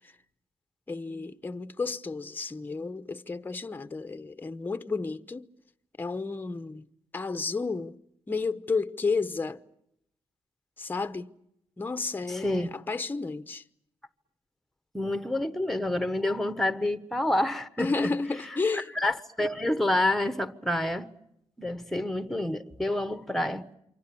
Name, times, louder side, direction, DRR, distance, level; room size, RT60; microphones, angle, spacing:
voice 1, 0.9-5.5 6.0-6.9 7.1-8.0 8.3-9.6 10.8-11.3 11.8-13.6 17.8-18.9, left 4 dB, 20° left, 0.9 m, -32 dB
voice 2, 12.3-12.7 14.9-18.1 18.7-21.1 21.6-23.7, left 1 dB, ahead, 1.3 m, -28 dB
28.0 x 25.0 x 7.0 m
cardioid pair, 105°, 11 cm